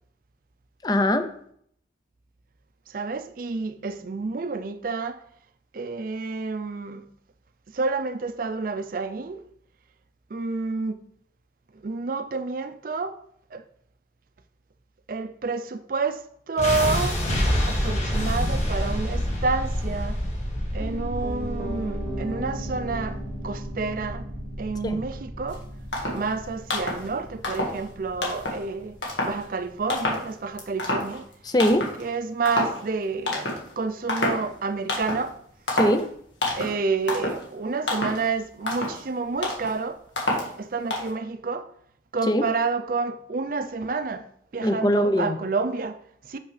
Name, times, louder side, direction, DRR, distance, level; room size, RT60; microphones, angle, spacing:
voice 1, 0.8-1.3 24.8-25.0 31.5-31.9 35.7-36.1 42.3-42.5 44.6-45.4, equal, 20° left, 0.4 m, -22 dB
voice 2, 2.9-5.2 5.7-7.1 7.7-9.4 10.3-11.1 11.7-13.2 13.5-13.6 15.1-17.2 17.7-20.2 20.7-24.3 24.6-25.6 26.1-29.0 29.2-31.3 32.0-35.4 36.6-40.0 40.6-41.7 42.1-44.3 44.5-46.4, right 4 dB, 50° right, 0.4 m, -29 dB
sound 1, 16.6-28.6, equal, 40° left, 1.6 m, -29 dB
Piano, 20.8-30.8 31.1-31.2, right 1 dB, 10° right, 1.0 m, -39 dB
sound 2, 25.5-25.6 25.9-26.3 26.7-27.1 27.4-27.9 28.2-28.6 29.0-29.4 29.9-30.3 30.6-31.3 31.6-32.0 32.4-32.8 33.3-33.7 34.1-34.5 34.9-35.3 35.7-36.0 36.4-36.8 37.1-37.4 37.9-38.3 38.6-39.0 39.4-39.7 40.2-40.5 40.9-41.1, left 2 dB, 80° left, 1.7 m, -28 dB
6.4 x 5.8 x 3.3 m
head